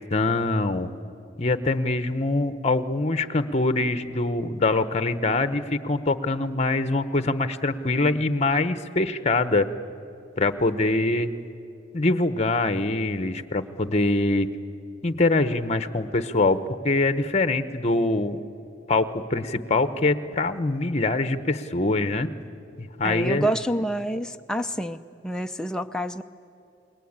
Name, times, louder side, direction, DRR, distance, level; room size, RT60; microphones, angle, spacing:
voice 1, 0.1-0.9 1.4-9.7 10.4-11.3 11.9-14.5 15.0-18.4 18.9-22.3 22.8-23.5, left 2 dB, 35° left, 12 dB, 1.0 m, -24 dB
voice 2, 23.0-26.2, right 1 dB, 5° left, 5 dB, 0.5 m, -28 dB
28.5 x 21.0 x 8.8 m, 2.6 s
head